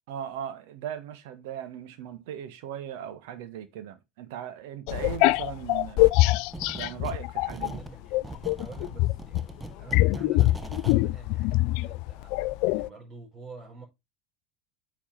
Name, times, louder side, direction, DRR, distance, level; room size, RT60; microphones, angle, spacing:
voice 1, 0.1-6.0 6.7-7.7, right 9 dB, 60° right, 1.5 m, -38 dB
sound 1, 4.9-7.7 8.1-12.9, left 19 dB, 55° left, 0.3 m, -24 dB
sound 2, 6.5-7.2 7.5-11.0, right 2 dB, 10° right, 0.9 m, -41 dB
voice 2, 7.5-13.8, right 3 dB, 35° right, 5.2 m, -48 dB
8.7 x 5.1 x 4.3 m
figure-of-eight pair, 75°, 0 cm